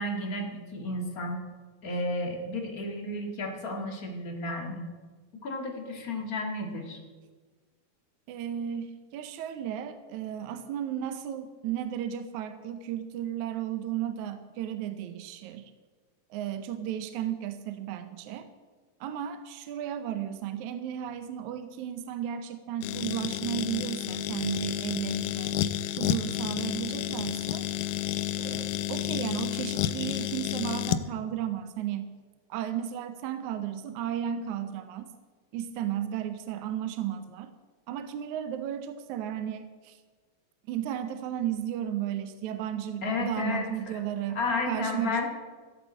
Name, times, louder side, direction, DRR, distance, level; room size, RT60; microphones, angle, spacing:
voice 1, 0.0-1.4 1.8-4.8 5.4-7.0 43.0-43.7 44.4-45.3, left 2 dB, 35° left, 1 dB, 1.6 m, -32 dB
voice 2, 8.3-15.7 16.3-18.5 19.0-25.6 26.0-27.7 28.4-32.1 32.5-35.1 35.5-37.5 37.9-40.0 40.7-44.4 44.7-45.3, right 10 dB, 75° right, 10 dB, 1.9 m, -34 dB
sound 1, 22.8-31.1, left 12 dB, 80° left, 2.0 m, -31 dB
15.0 x 8.7 x 7.5 m, 1.4 s
omnidirectional pair, 4.0 m